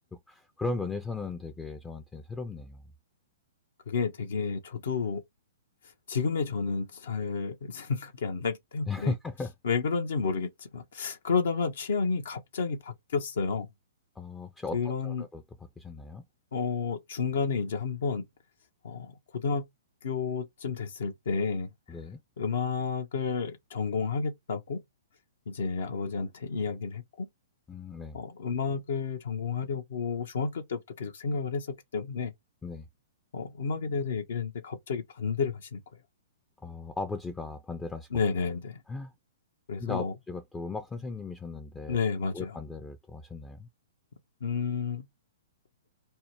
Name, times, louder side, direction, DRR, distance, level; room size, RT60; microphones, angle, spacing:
voice 1, 0.3-2.8 8.9-9.5 14.2-14.8 15.0-15.4 15.8-16.2 21.9-22.2 27.7-28.2 32.6-32.9 36.6-38.1 38.9-39.1 39.8-42.0 42.3-43.7, left 3 dB, 10° left, 0.4 m, -36 dB
voice 2, 3.9-5.2 6.1-9.1 9.6-13.7 14.7-15.3 16.5-18.2 18.8-19.6 20.0-21.7 22.4-24.8 25.5-27.3 28.1-32.3 33.3-35.8 38.1-38.8 39.7-40.1 41.9-42.5 44.4-45.1, left 5 dB, 65° left, 0.6 m, -31 dB
2.7 x 2.1 x 3.1 m
figure-of-eight pair, 115°, 0 cm